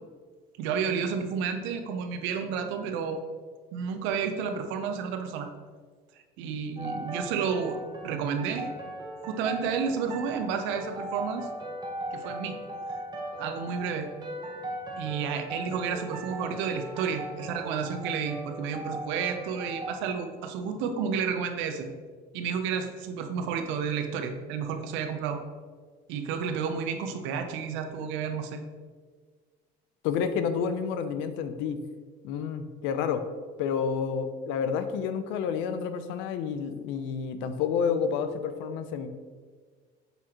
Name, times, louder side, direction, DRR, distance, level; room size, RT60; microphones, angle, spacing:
voice 1, 0.6-3.2 3.7-5.5 6.4-8.7 9.2-11.5 12.1-12.6 13.4-14.1 15.0-21.9 22.3-25.4 26.1-28.6, right 6 dB, 85° right, 6 dB, 0.7 m, -31 dB
sound 1, 6.8-20.1, right 1 dB, 20° right, 1.0 m, -38 dB
voice 2, 30.0-31.8 32.2-33.2 33.6-39.1, left 6 dB, 85° left, 9 dB, 0.6 m, -29 dB
6.7 x 4.8 x 2.9 m, 1.5 s
cardioid pair, 115°, 19 cm